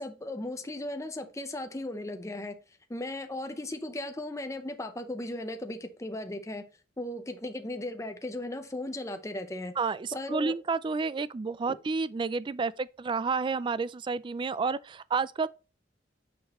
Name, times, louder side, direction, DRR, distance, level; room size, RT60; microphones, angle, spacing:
voice 1, 0.0-2.5 2.9-6.6 7.0-9.7 10.1-10.5 11.7-11.8, left 1 dB, 15° left, 0.6 m, -36 dB
voice 2, 9.8-15.5, right 4 dB, 25° right, 0.3 m, -30 dB
6.4 x 5.9 x 3.0 m
head